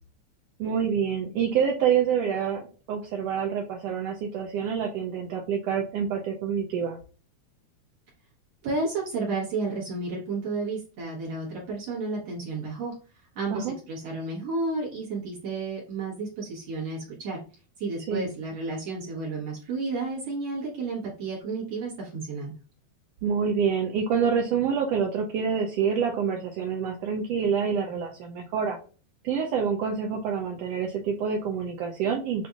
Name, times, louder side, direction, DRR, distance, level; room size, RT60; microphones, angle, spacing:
voice 1, 0.6-7.0 13.5-13.7 18.1-18.3 23.2-28.8 29.2-32.5, right 7 dB, 85° right, 1 dB, 1.4 m, -27 dB
voice 2, 8.6-12.9 13.4-17.4 17.8-22.5, right 3 dB, 65° right, -5 dB, 2.2 m, -32 dB
6.7 x 2.5 x 2.4 m, 0.38 s
omnidirectional pair, 3.3 m